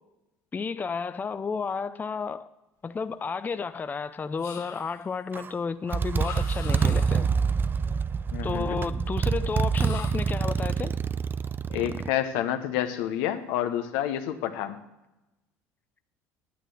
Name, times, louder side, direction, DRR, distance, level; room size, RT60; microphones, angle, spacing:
voice 1, 0.5-2.5 2.8-7.3 8.4-10.9, left 5 dB, 25° left, 0.5 m, -32 dB
sound 1, 4.4-5.2 6.1-7.4 9.7-10.4, left 6 dB, 55° left, 1.7 m, -42 dB
Motorcycle, 5.3-5.5 5.9-12.1, right 6 dB, 30° right, 0.4 m, -27 dB
voice 2, 8.3-8.8 11.7-14.8, left 11 dB, 80° left, 1.0 m, -29 dB
9.4 x 9.0 x 6.3 m
supercardioid pair, 85°, 7 cm